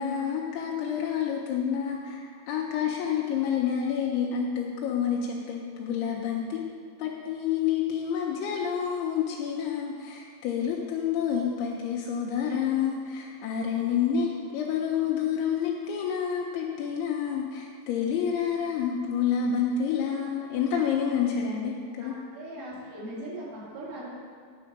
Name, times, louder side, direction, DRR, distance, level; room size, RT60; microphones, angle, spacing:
voice 1, 0.0-6.6 7.0-22.1, left 7 dB, 85° left, -2 dB, 2.6 m, -28 dB
voice 2, 22.0-24.2, right 1 dB, 75° right, -7 dB, 3.8 m, -39 dB
9.2 x 4.3 x 5.2 m, 2.1 s
omnidirectional pair, 4.5 m